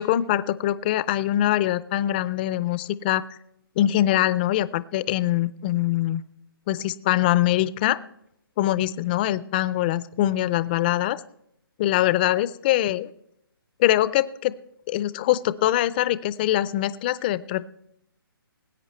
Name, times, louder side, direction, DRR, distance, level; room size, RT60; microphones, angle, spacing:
voice 1, 0.0-3.2 3.8-6.2 6.7-8.0 8.6-11.2 11.8-13.1 13.8-14.5 14.9-17.7, left 14 dB, 25° left, 17 dB, 0.5 m, -23 dB
19.5 x 8.8 x 4.4 m, 0.77 s
hypercardioid pair, 155°, 12 cm